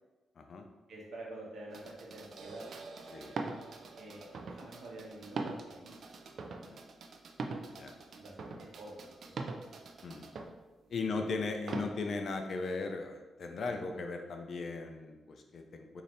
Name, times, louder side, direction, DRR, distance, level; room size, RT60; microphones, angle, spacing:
voice 1, 0.4-0.7 3.1-3.3 6.5-6.8 7.7-7.9 10.0-10.3 10.9-16.0, left 3 dB, 50° left, 5 dB, 0.4 m, -38 dB
voice 2, 0.9-2.7 4.0-6.0 6.5-6.8 8.1-9.4 11.0-11.3, right 1 dB, 70° right, -3 dB, 1.0 m, -48 dB
sound 1, 1.7-10.5 11.7-11.9, right 3 dB, 55° right, 0.3 m, -43 dB
3.9 x 2.7 x 3.2 m, 1.1 s
cardioid pair, 135°, 0 cm